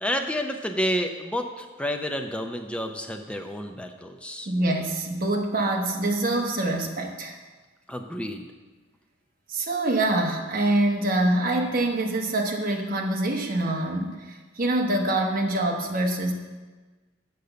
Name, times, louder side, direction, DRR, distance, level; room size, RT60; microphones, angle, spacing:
voice 1, 0.0-4.5 7.9-8.4, equal, 5° left, 5 dB, 0.5 m, -30 dB
voice 2, 4.5-7.3 9.5-16.3, right 1 dB, 45° right, 1 dB, 1.0 m, -25 dB
6.6 x 5.3 x 6.8 m, 1.3 s
head